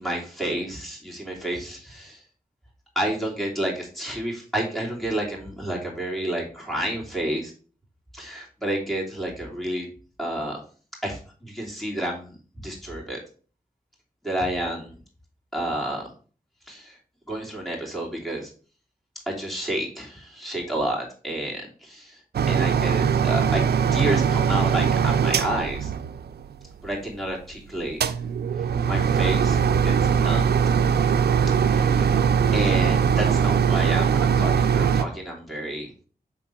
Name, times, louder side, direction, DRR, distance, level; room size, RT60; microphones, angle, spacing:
voice 1, 0.0-2.2 2.9-7.5 8.1-9.9 10.2-10.6 11.0-13.2 14.2-15.0 15.5-16.1 16.7-17.0 17.3-18.5 19.3-22.2 22.5-25.9 26.8-28.2 28.8-29.6 29.8-30.6 31.6-32.2 32.5-35.9, right 1 dB, ahead, -3 dB, 3.0 m, -30 dB
sound 1, 22.3-26.6 27.9-35.0, right 7 dB, 90° right, 0.4 m, -21 dB
6.1 x 3.8 x 4.5 m, 0.39 s
cardioid pair, 50°, 16 cm